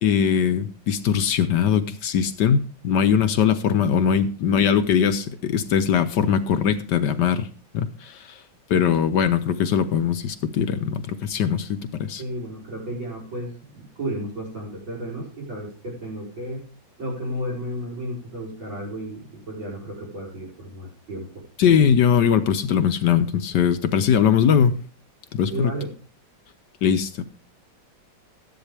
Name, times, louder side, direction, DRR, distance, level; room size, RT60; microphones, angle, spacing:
voice 1, 0.0-7.5 7.7-8.4 8.7-12.2 21.6-24.8 25.3-25.7 26.8-27.2, left 8 dB, 65° left, 10 dB, 1.2 m, -21 dB
voice 2, 12.2-16.6 17.0-21.3 25.5-25.9, right 1 dB, 75° right, -4 dB, 6.3 m, -33 dB
14.0 x 10.5 x 3.3 m, 0.38 s
omnidirectional pair, 2.1 m